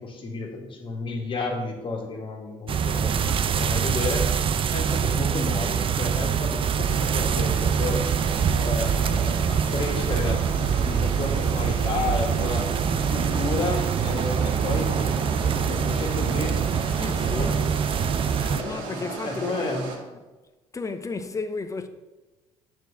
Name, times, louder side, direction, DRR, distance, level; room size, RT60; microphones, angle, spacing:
voice 1, 0.0-8.0 8.5-12.7 13.1-16.5 17.2-17.6 18.4-19.8, left 3 dB, 40° left, 2.1 m, -32 dB
sound 1, 2.7-18.6, right 7 dB, 45° right, 0.6 m, -24 dB
sound 2, 6.8-20.0, right 4 dB, 80° right, 1.9 m, -36 dB
voice 2, 17.0-17.5 18.6-19.7 20.0-20.1 20.7-21.9, left 3 dB, 25° left, 0.8 m, -33 dB
7.9 x 4.6 x 6.6 m
supercardioid pair, 80°, 13 cm